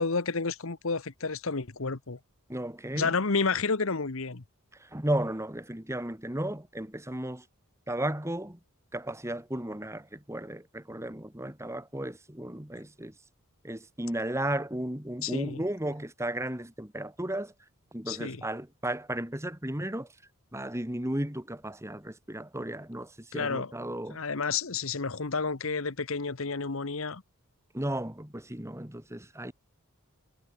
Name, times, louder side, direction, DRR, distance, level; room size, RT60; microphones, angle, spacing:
voice 1, 0.0-2.2 3.0-4.4 15.2-15.6 18.1-18.4 23.3-23.7 24.1-27.2, left 4 dB, 65° left, 1.2 m, -30 dB
voice 2, 2.5-3.1 4.7-7.5 7.9-8.6 8.9-13.1 13.6-17.5 17.9-20.1 20.5-24.2 27.7-29.5, right 1 dB, 15° right, 2.2 m, -34 dB
head